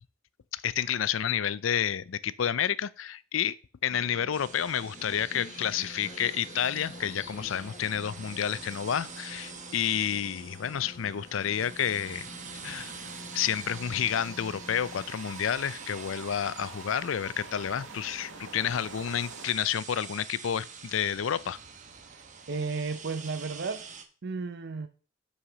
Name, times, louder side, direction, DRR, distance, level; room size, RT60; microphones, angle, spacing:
voice 1, 0.5-3.5 3.8-12.3 12.6-12.9 13.3-21.6, left 9 dB, 80° left, 0.5 m, -30 dB
sound 1, 3.9-15.1, left 2 dB, 35° left, 1.0 m, -48 dB
sound 2, 4.3-24.0, right 6 dB, 40° right, 1.0 m, -46 dB
sound 3, 8.1-19.5, right 4 dB, 75° right, 1.0 m, -49 dB
voice 2, 22.1-23.9 24.2-24.9, right 4 dB, 60° right, 0.6 m, -34 dB
5.7 x 5.7 x 6.7 m
head